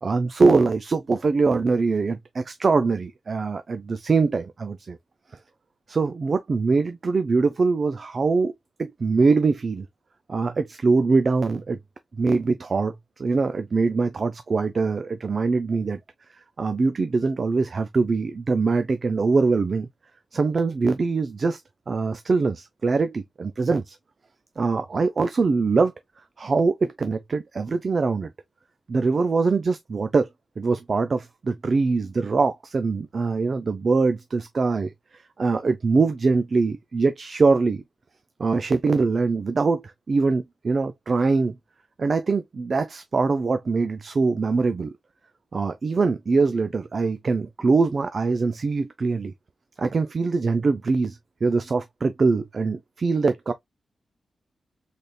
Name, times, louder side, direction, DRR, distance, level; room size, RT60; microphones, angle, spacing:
voice 1, 0.0-5.0 5.9-8.5 8.8-9.9 10.3-11.8 12.2-16.0 16.6-19.9 20.3-21.6 21.9-24.0 24.6-25.9 26.4-28.3 28.9-30.3 30.6-34.9 35.4-37.8 38.4-41.5 42.0-44.9 45.5-49.3 49.8-53.5, right 4 dB, 40° right, 0.3 m, -23 dB
4.0 x 3.4 x 2.2 m
wide cardioid pair, 180°, 0 cm